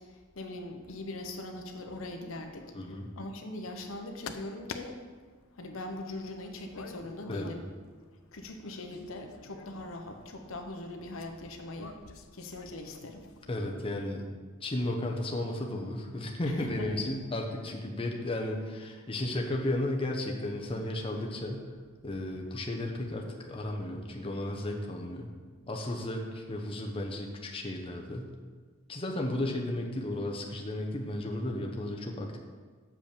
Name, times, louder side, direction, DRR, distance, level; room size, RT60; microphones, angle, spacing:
voice 1, 0.0-5.0 5.6-7.6 8.3-12.0 12.3-13.3 16.5-16.9, left 1 dB, 70° left, 4 dB, 1.0 m, -41 dB
sound 1, 1.8-13.6, left 5 dB, 90° left, 0.6 m, -50 dB
voice 2, 2.7-3.1 7.3-7.5 13.5-14.2 14.6-21.7 22.0-25.3 25.7-28.3 28.9-32.4, left 1 dB, 25° left, 1 dB, 0.8 m, -34 dB
7.2 x 5.3 x 6.7 m, 1.5 s
head